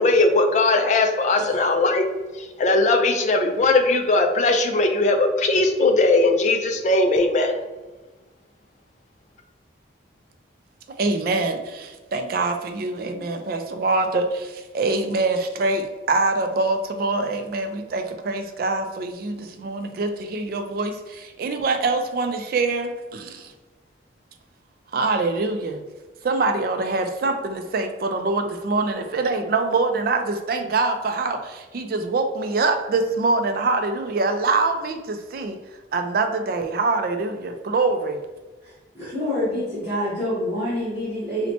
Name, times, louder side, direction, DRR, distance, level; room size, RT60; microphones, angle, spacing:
voice 1, 0.0-2.1 2.4-7.6, left 2 dB, 40° left, 5 dB, 0.3 m, -19 dB
voice 2, 11.0-23.5 24.9-25.8 26.2-35.6 35.9-38.2, right 3 dB, 50° right, 6 dB, 0.3 m, -24 dB
voice 3, 38.6-41.5, left 1 dB, 10° right, -13 dB, 1.0 m, -27 dB
4.0 x 2.1 x 2.7 m, 1.2 s
head